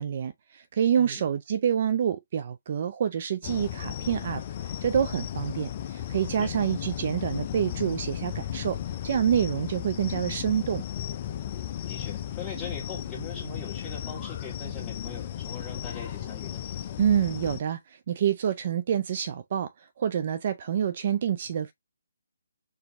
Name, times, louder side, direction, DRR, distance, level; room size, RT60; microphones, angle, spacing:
voice 1, 0.0-4.4 4.8-8.8 9.0-10.8 17.0-19.7 20.0-21.7, right 9 dB, 45° right, 0.4 m, -27 dB
voice 2, 1.0-1.3 6.4-6.5 11.9-16.6, left 4 dB, 10° left, 1.7 m, -41 dB
sound 1, 3.4-17.6, left 10 dB, 35° left, 0.4 m, -35 dB
4.3 x 2.6 x 3.0 m
figure-of-eight pair, 150°, 0 cm